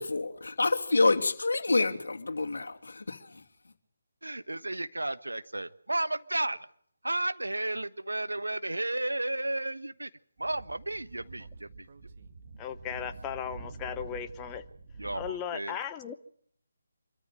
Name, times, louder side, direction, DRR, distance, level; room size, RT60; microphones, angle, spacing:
voice 1, 0.0-3.7, left 3 dB, 70° left, 2.6 m, -28 dB
voice 2, 4.2-6.7 7.0-10.1 10.4-11.9 15.0-15.8, right 2 dB, 90° right, 1.2 m, -33 dB
Speech / Wind, 10.4-15.3, right 4 dB, 45° right, 2.0 m, -46 dB
voice 3, 12.6-14.6 15.1-16.1, left 9 dB, 15° left, 1.0 m, -36 dB
25.5 x 13.5 x 9.0 m
figure-of-eight pair, 155°, 0 cm